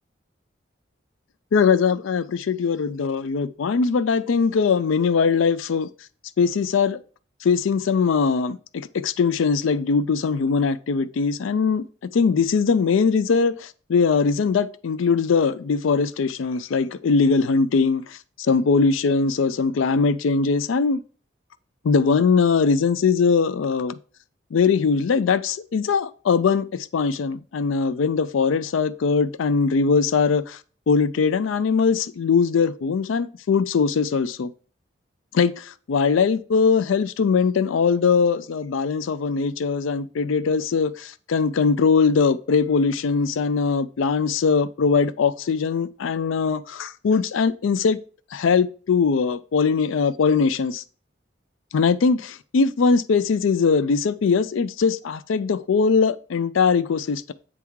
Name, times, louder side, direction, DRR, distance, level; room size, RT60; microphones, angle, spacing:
voice 1, 1.5-5.9 6.4-7.0 7.4-11.9 12.1-21.0 21.8-23.9 24.5-30.6 30.9-34.5 35.3-48.0 48.3-50.8 51.7-57.3, left 5 dB, 85° left, 0.4 m, -21 dB
8.0 x 3.6 x 4.6 m
head